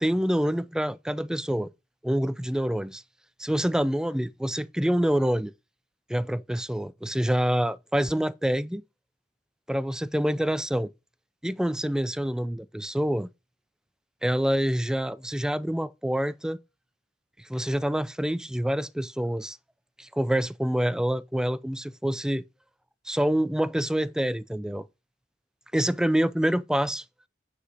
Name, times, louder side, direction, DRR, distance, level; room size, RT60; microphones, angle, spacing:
voice 1, 0.0-1.7 2.0-3.0 3.4-5.5 6.1-8.8 9.7-10.9 11.4-13.3 14.2-16.6 17.4-19.6 20.0-22.4 23.1-24.9 25.7-27.0, equal, 5° right, 0.3 m, -26 dB
8.6 x 4.9 x 4.7 m
head